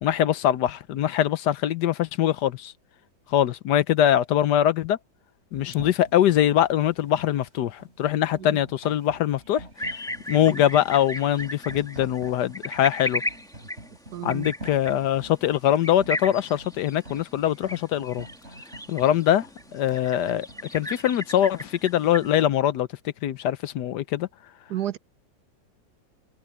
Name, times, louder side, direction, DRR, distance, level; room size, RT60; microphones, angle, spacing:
voice 1, 0.0-2.7 3.3-5.0 5.5-9.6 10.3-13.2 14.2-18.3 18.9-19.5 19.7-20.5 20.7-22.9 23.2-24.3, left 11 dB, 65° left, 1.3 m, -23 dB
sound 1, 5.5-21.8, right 1 dB, 35° right, 8.4 m, -46 dB
sound 2, 9.8-22.4, left 1 dB, ahead, 1.8 m, -36 dB
voice 2, 14.1-14.5 24.7-25.0, right 12 dB, 65° right, 1.3 m, -31 dB
omnidirectional pair, 2.1 m